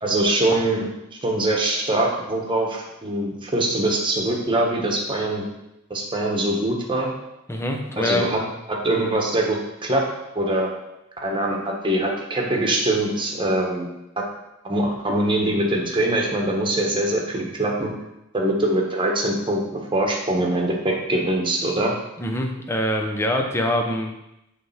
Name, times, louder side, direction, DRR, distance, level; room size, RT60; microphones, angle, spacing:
voice 1, 0.0-0.9 1.2-5.4 5.9-7.1 8.0-8.4 8.7-10.1 10.3-10.7 11.2-13.9 14.6-17.9 18.3-21.9, right 1 dB, 25° right, 0 dB, 1.3 m, -23 dB
voice 2, 7.5-8.5 22.2-24.1, left 1 dB, 15° left, 2 dB, 0.8 m, -24 dB
7.5 x 3.5 x 5.6 m, 0.88 s
head